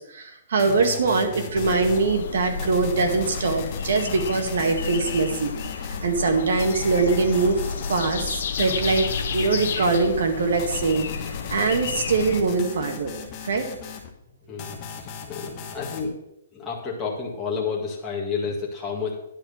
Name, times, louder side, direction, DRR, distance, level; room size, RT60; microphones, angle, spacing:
voice 1, 0.0-5.5 5.8-7.6 7.9-11.1 11.5-13.1 13.4-13.7, right 4 dB, 70° right, 4 dB, 1.9 m, -23 dB
sound 1, 0.6-2.1 2.6-6.1 6.6-8.1 8.6-10.1 10.6-14.1 14.6-16.1, left 5 dB, 25° left, 1.3 m, -38 dB
sound 2, 1.5-12.4, left 6 dB, 60° left, 1.0 m, -31 dB
voice 2, 14.5-16.1 16.5-19.1, left 5 dB, 10° left, -5 dB, 1.8 m, -30 dB
10.5 x 4.6 x 7.7 m, 0.78 s
hypercardioid pair, 170°, 0 cm